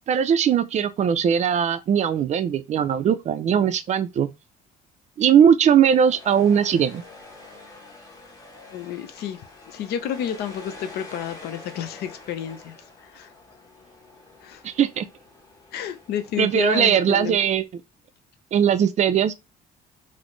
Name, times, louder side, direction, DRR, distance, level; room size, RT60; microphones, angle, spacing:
voice 1, 0.1-4.3 5.2-7.0 14.6-15.1 16.4-17.6 18.5-19.3, right 8 dB, 45° right, 0.4 m, -20 dB
sound 1, 5.7-17.6, left 3 dB, 20° left, 0.9 m, -46 dB
voice 2, 8.7-9.4 9.7-12.7 13.0-13.3 14.4-14.6 15.7-17.4, left 9 dB, 70° left, 0.6 m, -30 dB
4.0 x 2.0 x 3.1 m
cardioid pair, 110°, 17 cm